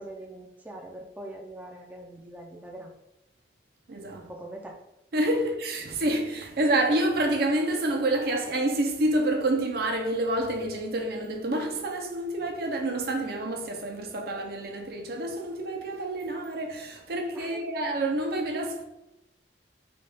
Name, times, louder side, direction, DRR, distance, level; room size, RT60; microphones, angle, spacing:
voice 1, 0.0-2.9 4.1-4.8 17.3-17.6, right 1 dB, 10° right, 0.5 m, -42 dB
voice 2, 3.9-4.3 5.1-18.9, right 1 dB, 60° right, 0.6 m, -28 dB
4.0 x 2.4 x 3.4 m
head